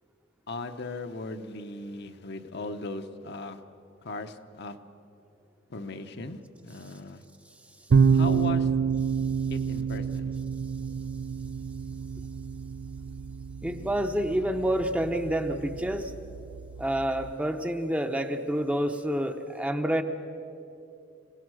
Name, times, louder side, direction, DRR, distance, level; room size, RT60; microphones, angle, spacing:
voice 1, 0.5-3.6 4.0-4.8 5.7-7.2 8.1-8.7 9.5-10.4, left 2 dB, 55° left, 7 dB, 1.0 m, -38 dB
sound 1, 7.9-17.3, right 6 dB, 60° right, 0.4 m, -28 dB
voice 2, 13.6-16.1 16.8-20.0, right 1 dB, 5° right, 6 dB, 0.8 m, -28 dB
26.5 x 17.0 x 6.3 m, 2.7 s
head